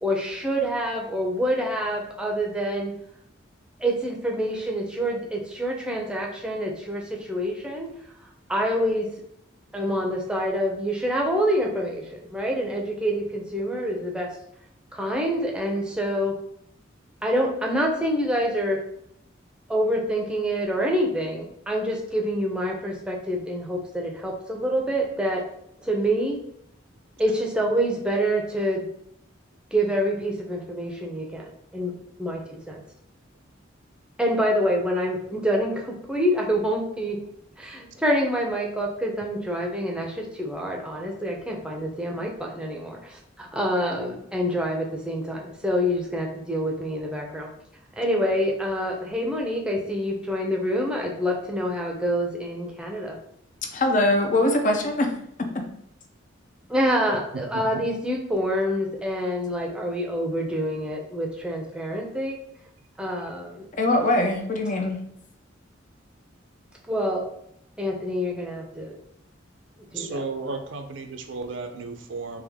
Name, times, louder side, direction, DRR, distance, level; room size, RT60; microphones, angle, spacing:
voice 1, 0.0-2.9 3.8-7.9 8.5-9.1 9.7-14.3 14.9-16.3 17.2-18.8 19.7-25.4 25.8-26.4 27.2-28.9 29.7-31.9 32.2-32.4 32.7-32.8 34.2-37.2 37.6-47.5 48.0-53.2 56.7-62.4 63.0-63.7 66.9-67.2 67.8-69.0 69.9-70.2, equal, 5° right, 0 dB, 0.6 m, -26 dB
voice 2, 53.7-55.1 55.4-55.5 63.8-65.0, left 1 dB, 40° left, 4 dB, 0.5 m, -22 dB
voice 3, 69.9-72.4, right 3 dB, 70° right, 6 dB, 0.5 m, -33 dB
3.5 x 2.9 x 3.5 m, 0.72 s
head